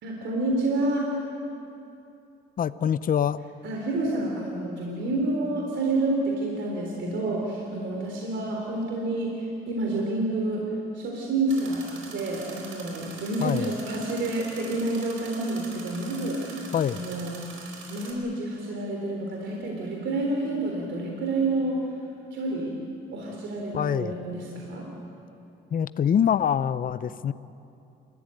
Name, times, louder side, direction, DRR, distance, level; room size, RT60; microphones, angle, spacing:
voice 1, 0.0-1.2 3.6-17.4 17.9-21.8 22.3-22.8 23.1-24.9, right 2 dB, 70° right, 0 dB, 3.6 m, -29 dB
voice 2, 2.6-3.4 13.4-13.7 16.7-17.0 23.7-24.1 25.7-27.3, left 8 dB, 45° left, 14 dB, 0.6 m, -24 dB
sound 1, 11.5-18.1, right 4 dB, 85° right, 4.4 m, -43 dB
29.0 x 14.5 x 9.1 m, 2.7 s
cardioid pair, 90°, 20 cm